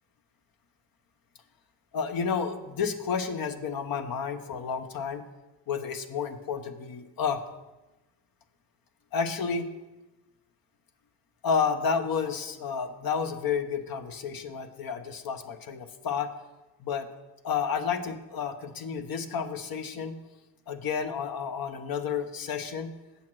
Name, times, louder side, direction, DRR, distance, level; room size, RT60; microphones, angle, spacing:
voice 1, 1.9-5.2 5.7-7.4 9.1-9.7 11.4-16.3 16.8-17.1 17.4-20.2 20.7-22.9, left 6 dB, 55° left, 7 dB, 0.9 m, -31 dB
8.2 x 6.5 x 6.1 m, 1.1 s
supercardioid pair, 65°, 42 cm